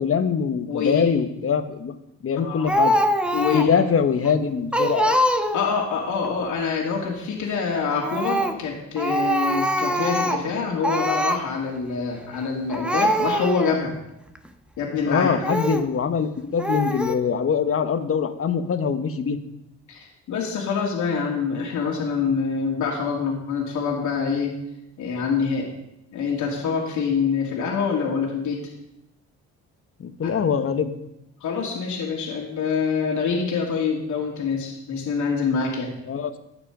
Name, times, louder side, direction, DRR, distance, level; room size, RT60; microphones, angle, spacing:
voice 1, 0.0-1.9 2.2-2.9 3.5-5.2 15.0-19.4 30.0-30.9 36.1-36.4, left 6 dB, 50° left, 9 dB, 1.3 m, -23 dB
voice 2, 0.7-1.0 2.4-2.7 3.3-3.7 5.5-13.9 14.8-15.3 19.9-24.5 25.0-25.7 26.1-28.6 30.2-30.3 31.4-35.9, left 5 dB, 75° left, -2 dB, 2.8 m, -25 dB
Speech, 2.7-3.8 4.2-4.3 4.7-5.8 8.0-8.6 9.0-10.5 10.8-11.4 12.3-12.5 12.7-13.8 14.4-14.5 15.4-15.9 16.6-17.2, equal, 5° right, 1.3 m, -23 dB
14.0 x 8.8 x 5.0 m, 0.87 s
cardioid pair, 90°, 30 cm